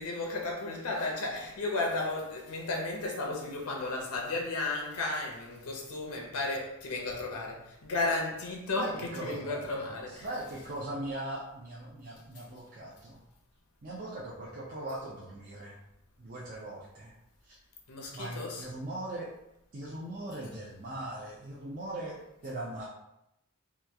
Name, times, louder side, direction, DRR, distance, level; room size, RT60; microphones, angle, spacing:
voice 1, 0.0-10.3 17.9-18.7, left 2 dB, 90° left, 0.7 m, -34 dB
voice 2, 8.7-13.2 13.8-15.8 16.2-17.1 17.4-17.6 18.1-19.3 19.7-22.9, right 1 dB, 40° right, 0.5 m, -40 dB
2.9 x 2.3 x 3.4 m
head